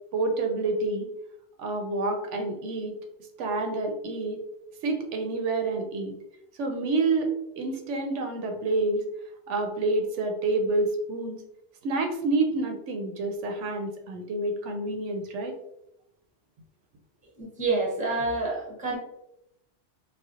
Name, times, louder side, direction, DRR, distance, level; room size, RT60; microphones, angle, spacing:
voice 1, 0.1-1.1 1.6-2.9 3.4-4.4 4.8-6.1 6.6-7.3 7.6-9.0 9.5-11.4 11.8-15.6, right 2 dB, 80° right, 4 dB, 0.9 m, -28 dB
voice 2, 17.4-19.0, right 3 dB, 10° right, -3 dB, 0.6 m, -28 dB
4.2 x 2.0 x 2.4 m, 0.84 s
omnidirectional pair, 1.2 m